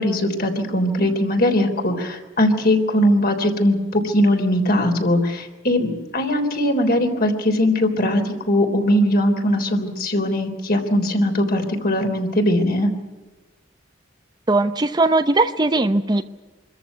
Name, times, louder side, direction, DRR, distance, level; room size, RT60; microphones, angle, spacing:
voice 1, 0.0-12.9, left 1 dB, 50° left, 4 dB, 3.5 m, -20 dB
voice 2, 14.5-16.2, right 2 dB, 20° right, 9 dB, 0.7 m, -19 dB
26.0 x 14.0 x 9.5 m, 1.2 s
head